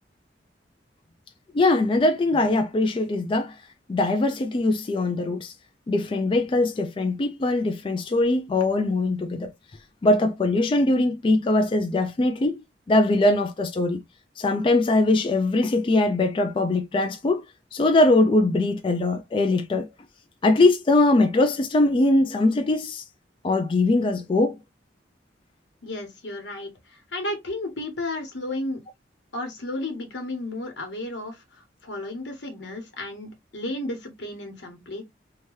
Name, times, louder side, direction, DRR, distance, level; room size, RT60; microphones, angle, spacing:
voice 1, 1.5-3.5 3.9-5.5 5.9-9.5 10.0-14.0 14.4-17.4 17.7-19.9 20.4-23.0 23.4-24.6, left 2 dB, 30° left, 0.3 m, -21 dB
voice 2, 25.8-26.7 27.1-28.8 29.3-31.4 31.8-35.0, left 1 dB, 85° left, 1.1 m, -33 dB
2.8 x 2.2 x 3.1 m
head